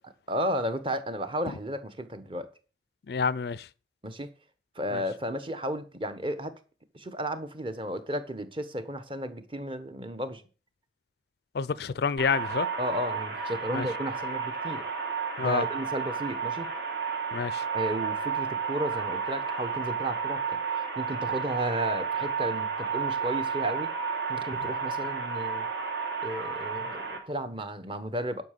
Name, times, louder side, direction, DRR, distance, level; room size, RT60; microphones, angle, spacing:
voice 1, 0.3-2.5 4.0-4.3 4.7-6.6 6.9-10.4 12.8-14.8 15.4-16.7 17.7-20.6 21.0-23.9 24.3-25.7 26.2-28.4, right 1 dB, 25° right, 1.2 m, -33 dB
voice 2, 3.1-3.7 4.9-5.0 11.5-12.7 13.7-13.8 15.4-15.6 17.3-17.6, left 5 dB, 55° left, 0.4 m, -28 dB
sound 1, 12.2-27.2, right 5 dB, 65° right, 3.1 m, -32 dB
11.0 x 5.7 x 6.6 m
head